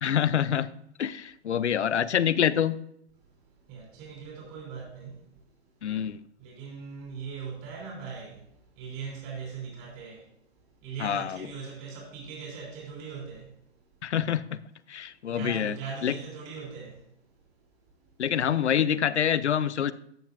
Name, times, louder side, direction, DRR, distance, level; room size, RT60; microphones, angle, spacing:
voice 1, 0.0-0.7 1.0-2.8 5.8-6.2 11.0-11.5 14.0-14.6 14.9-16.2 18.2-19.9, left 9 dB, 85° left, 0.6 m, -26 dB
voice 2, 3.7-5.3 6.4-8.5 8.8-10.3 10.8-13.6 15.3-17.0, right 5 dB, 35° right, 3.6 m, -40 dB
13.5 x 7.2 x 2.6 m
hypercardioid pair, 135°, 34 cm